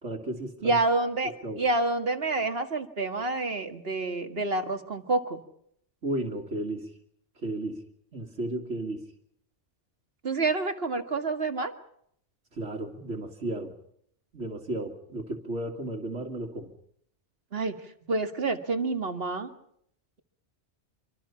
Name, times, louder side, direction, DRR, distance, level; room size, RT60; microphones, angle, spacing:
voice 1, 0.0-0.8 1.4-1.6 6.0-6.9 7.4-7.8 8.1-9.1 12.5-13.7 14.3-16.7, right 1 dB, 85° right, -1 dB, 2.6 m, -34 dB
voice 2, 0.6-5.4 10.2-11.7 17.5-17.8 18.1-19.5, right 3 dB, 60° right, 7 dB, 2.2 m, -28 dB
25.5 x 25.5 x 5.8 m, 0.69 s
omnidirectional pair, 1.2 m